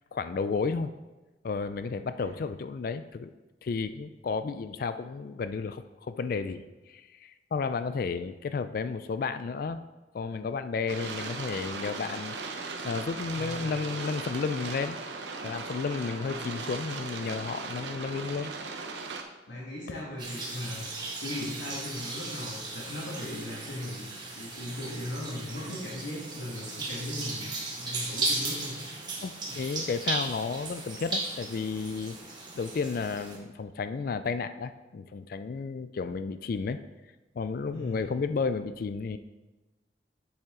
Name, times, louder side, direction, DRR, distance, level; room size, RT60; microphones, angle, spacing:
voice 1, 0.1-0.9 1.4-3.3 3.6-9.8 10.1-12.4 12.8-15.0 15.4-18.5 29.2-32.2 32.5-36.8 37.4-39.2, left 5 dB, 50° left, 11 dB, 0.3 m, -32 dB
sound 1, 10.9-19.2, right 4 dB, 75° right, 0.8 m, -38 dB
voice 2, 13.3-13.8 16.3-16.6 19.5-20.9 21.2-24.1 24.3-27.5 27.8-28.8 29.5-29.6 37.7-38.2, left 1 dB, 85° left, -6 dB, 1.9 m, -38 dB
sound 2, 20.2-33.4, right 2 dB, 25° right, 1.5 m, -36 dB
7.7 x 7.2 x 3.7 m, 1.1 s
head